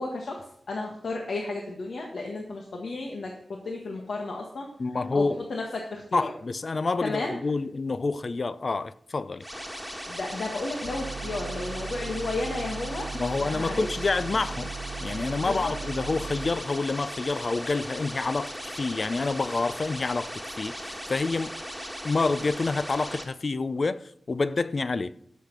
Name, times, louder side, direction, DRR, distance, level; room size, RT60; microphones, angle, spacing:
voice 1, 0.0-3.3 3.6-4.7 5.1-5.2 5.5-6.3 7.0-7.3 10.1-13.1 13.4-14.1 15.4-15.7, left 2 dB, 70° left, 1.5 m, -33 dB
voice 2, 4.8-5.4 6.1-9.5 13.1-14.7 15.0-21.5 22.0-25.1, left 3 dB, 40° left, 0.5 m, -28 dB
sound 1, 9.4-23.2, equal, 5° left, 1.8 m, -38 dB
sound 2, 10.8-16.5, right 5 dB, 75° right, 0.5 m, -38 dB
13.5 x 6.6 x 6.0 m
wide cardioid pair, 145°, 0 cm